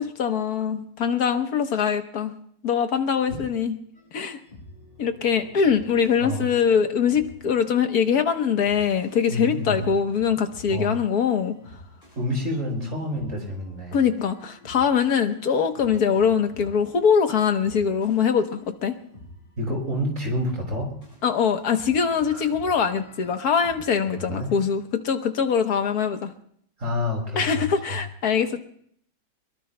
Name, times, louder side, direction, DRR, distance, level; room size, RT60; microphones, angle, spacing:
voice 1, 0.0-2.3 2.6-3.8 4.1-4.4 5.0-11.5 13.9-18.9 21.2-26.3 27.4-28.6, left 7 dB, 65° left, 7 dB, 1.5 m, -23 dB
sound 1, 3.9-23.8, left 1 dB, 30° left, 7.5 m, -49 dB
voice 2, 9.3-9.9 10.7-10.9 12.2-14.0 19.6-20.9 22.3-22.5 24.1-24.5 26.8-28.0, left 1 dB, 45° right, 0 dB, 5.2 m, -28 dB
23.0 x 22.5 x 2.2 m, 0.63 s
omnidirectional pair, 1.8 m